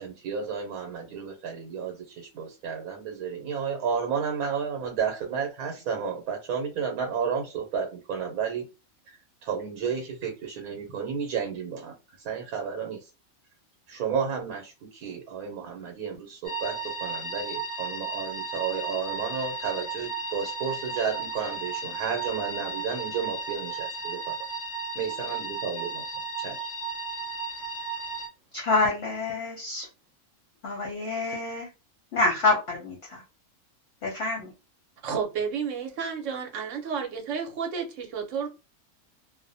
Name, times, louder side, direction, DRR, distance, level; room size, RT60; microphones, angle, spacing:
voice 1, 0.0-8.7 9.1-11.9 12.2-13.0 13.9-24.3 24.9-26.0 26.4-26.7, right 6 dB, 85° right, 2 dB, 1.1 m, -32 dB
sound 1, 16.4-28.3, right 3 dB, 25° left, 0.4 m, -34 dB
voice 2, 28.5-29.9 30.6-31.7 32.1-33.2 34.0-34.5, left 3 dB, 55° left, 0 dB, 0.8 m, -27 dB
voice 3, 35.0-38.5, right 6 dB, 65° right, 3 dB, 1.0 m, -31 dB
2.5 x 2.1 x 2.6 m, 0.29 s
omnidirectional pair, 1.5 m